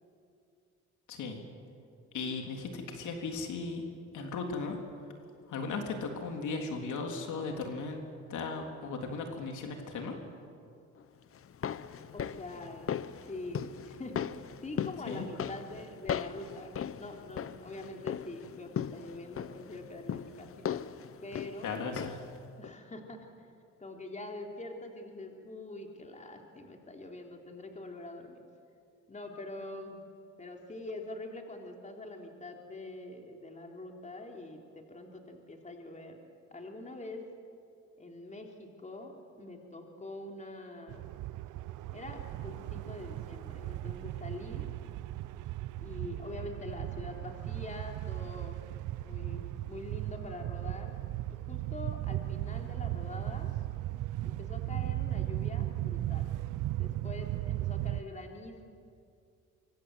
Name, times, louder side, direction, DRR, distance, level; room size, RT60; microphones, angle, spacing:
voice 1, 1.1-1.4 2.1-3.8 4.1-4.8 5.5-8.0 8.3-10.2 15.1-15.3 21.6-22.2, left 4 dB, 75° left, 3 dB, 3.6 m, -36 dB
sound 1, 11.3-22.4 22.6-22.7, left 8 dB, 45° left, 0.9 m, -39 dB
voice 2, 12.1-12.9 13.2-20.8 21.2-21.8 22.6-23.5 23.8-28.4 29.1-30.0 30.4-36.2 36.5-37.3 38.0-41.1 41.9-44.7 45.8-48.6 49.0-50.9 51.5-53.5 54.2-56.3 56.8-58.6, left 2 dB, 25° left, 2 dB, 3.7 m, -44 dB
sound 2, 40.9-58.0, right 15 dB, 85° right, 0.7 m, -36 dB
25.0 x 24.5 x 8.1 m, 2.5 s
cardioid pair, 90°, 30 cm